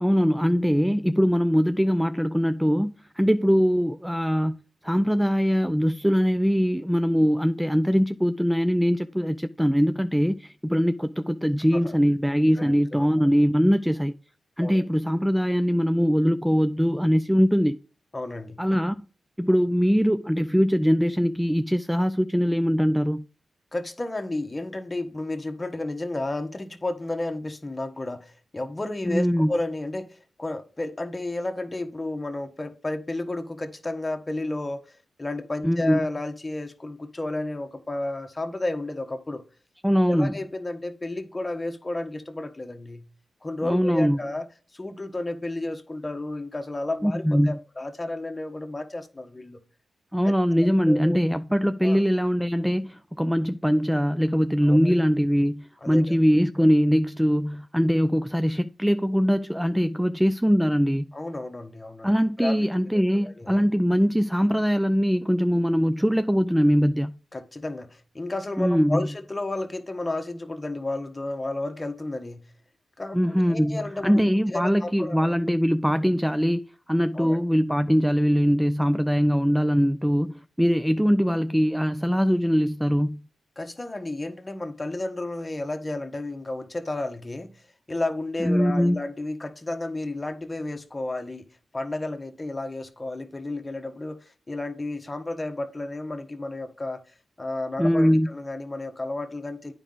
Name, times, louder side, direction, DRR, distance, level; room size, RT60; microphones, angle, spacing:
voice 1, 0.0-4.6 4.8-14.1 14.6-17.8 18.6-19.0 19.4-23.3 29.1-29.5 35.6-36.0 39.8-40.4 43.6-44.2 47.0-47.6 50.1-61.1 62.0-67.2 68.6-69.1 73.1-83.3 88.4-89.0 97.8-98.3, equal, 5° right, 0.4 m, -22 dB
voice 2, 12.6-13.3 14.6-14.8 18.1-18.6 23.7-39.4 40.1-43.0 43.4-44.5 44.7-49.6 50.2-50.3 50.9-51.2 51.8-52.0 54.6-54.9 55.8-56.1 61.1-62.1 62.4-62.7 63.2-63.6 67.3-72.4 73.0-75.3 77.1-77.4 83.6-87.6 87.9-91.5 91.7-97.0 97.4-99.7, left 2 dB, 30° left, 1.1 m, -32 dB
9.0 x 4.9 x 3.9 m
cardioid pair, 45°, 0 cm